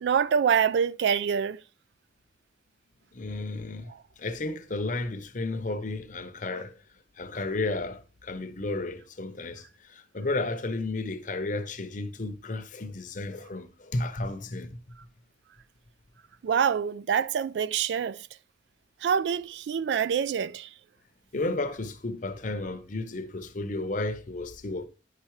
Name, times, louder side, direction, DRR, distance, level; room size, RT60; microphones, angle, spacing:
voice 1, 0.0-1.6 16.4-18.2 19.0-20.7, right 7 dB, 75° right, 0.3 m, -25 dB
voice 2, 3.1-3.9 4.2-6.7 7.2-9.6 9.9-14.8 21.3-24.9, left 2 dB, 45° left, 0.7 m, -33 dB
9.5 x 5.8 x 3.1 m
head